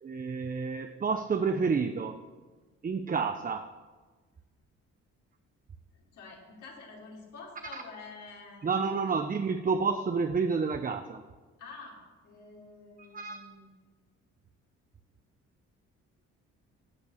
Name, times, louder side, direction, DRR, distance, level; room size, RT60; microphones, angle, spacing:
voice 1, 0.0-2.2 2.8-3.7 7.7-7.8 8.6-11.2 13.1-13.4, right 5 dB, 30° right, 7 dB, 0.7 m, -29 dB
voice 2, 5.9-9.1 11.6-12.0 12.2-13.7, left 4 dB, 75° left, -3 dB, 4.8 m, -48 dB
15.5 x 8.7 x 6.4 m, 1.4 s
cardioid pair, 90°, 30 cm